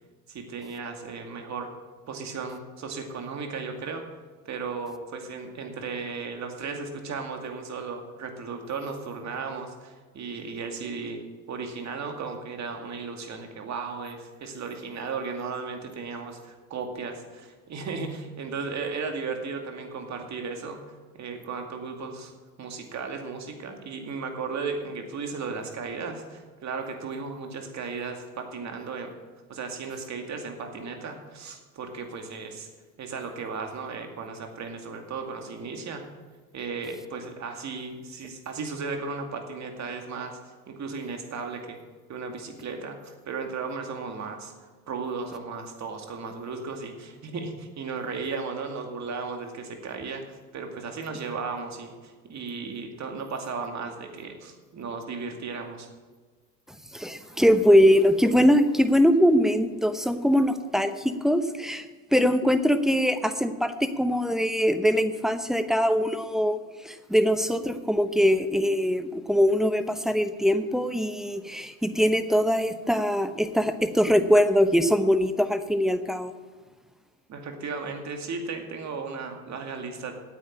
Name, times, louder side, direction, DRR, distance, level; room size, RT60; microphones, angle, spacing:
voice 1, 0.3-1.7 2.1-4.0 4.4-11.2 11.5-22.3 22.6-29.1 29.5-32.7 33.0-36.0 36.5-40.4 40.7-41.8 42.1-44.5 44.9-55.9 77.3-80.1, right 4 dB, 40° right, 4 dB, 2.4 m, -35 dB
voice 2, 56.9-61.9 62.1-76.3, equal, ahead, 10 dB, 0.8 m, -22 dB
9.4 x 8.7 x 8.7 m, 1.4 s
supercardioid pair, 95°, 43 cm